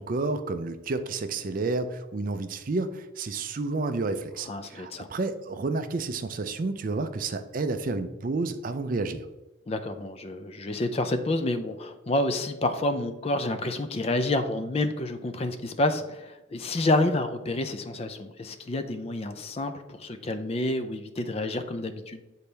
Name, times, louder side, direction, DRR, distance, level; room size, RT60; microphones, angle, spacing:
voice 1, 0.0-9.2, right 3 dB, 40° right, 9 dB, 0.4 m, -30 dB
voice 2, 4.5-5.1 9.7-22.2, left 2 dB, 30° left, 8 dB, 0.4 m, -29 dB
8.4 x 4.1 x 3.3 m, 1.0 s
head